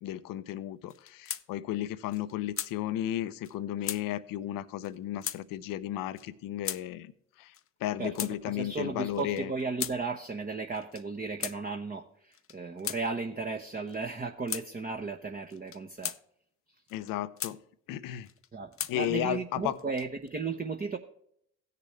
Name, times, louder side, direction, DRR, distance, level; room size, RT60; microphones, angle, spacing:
voice 1, 0.0-7.1 7.4-7.5 7.8-9.5 16.9-17.6 17.9-18.3 18.9-19.8, left 12 dB, 80° left, 14 dB, 0.7 m, -34 dB
sound 1, 0.9-1.4 1.8-1.9 2.1-2.7 3.4-3.6 3.8-4.0 4.8-5.0 5.2-5.4 6.2-6.3 6.6-6.8 7.5-8.3 9.1-10.0 10.7-11.0 11.4-11.6 12.3-13.0 13.9-14.0 14.5-14.7 15.5-16.2 16.9-17.6 18.2-19.0 19.7-20.3, left 9 dB, 40° left, 0.6 m, -37 dB
voice 2, 8.0-16.1 18.5-21.0, right 4 dB, 25° right, 4 dB, 0.9 m, -35 dB
15.5 x 6.8 x 3.2 m, 0.71 s
supercardioid pair, 55°, 33 cm